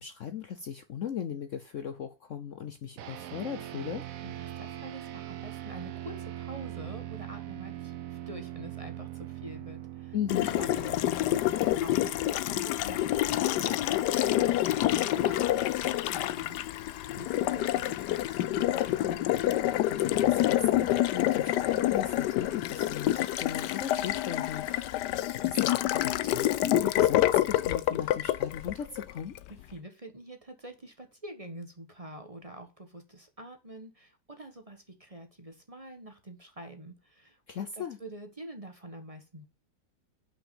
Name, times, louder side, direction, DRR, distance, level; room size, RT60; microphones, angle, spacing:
voice 1, 0.0-4.0 10.1-10.5 19.9-25.1 25.3-29.4 37.5-38.0, left 8 dB, 60° left, 9 dB, 0.9 m, -37 dB
sound 1, 3.0-12.6, right 13 dB, 65° right, 1.0 m, -41 dB
voice 2, 4.2-10.1 10.4-19.3 29.5-37.4 37.8-39.4, right 1 dB, 25° right, 6 dB, 1.2 m, -46 dB
Water tap faucet, 10.3-29.5, left 13 dB, 85° left, 1.2 m, -27 dB
5.9 x 5.4 x 6.9 m, 0.30 s
omnidirectional pair, 1.8 m